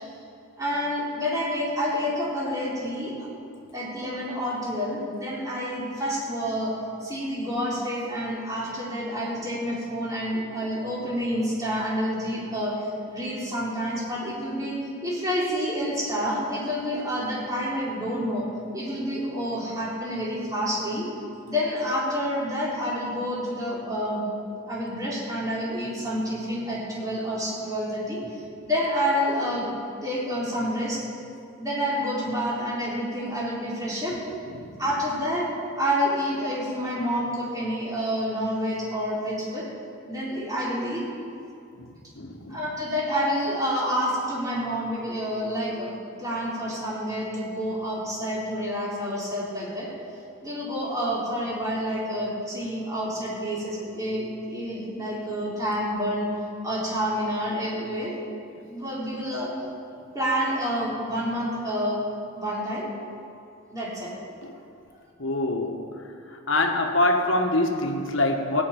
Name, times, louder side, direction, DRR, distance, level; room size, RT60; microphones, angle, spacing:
voice 1, 0.6-3.3 3.7-6.7 7.0-18.5 18.7-21.1 21.5-24.2 24.7-28.2 28.6-29.7 30.0-31.0 31.6-34.2 34.8-35.5 35.7-39.7 40.1-41.0 42.5-49.9 50.4-56.3 56.6-58.1 58.7-59.5 60.1-62.0 62.3-62.9 63.7-64.1, equal, 15° right, -7 dB, 3.6 m, -28 dB
voice 2, 41.7-42.6 64.4-64.5 65.2-65.8 66.3-68.6, left 2 dB, 65° left, 3 dB, 1.5 m, -25 dB
16.0 x 6.4 x 9.3 m, 2.5 s
head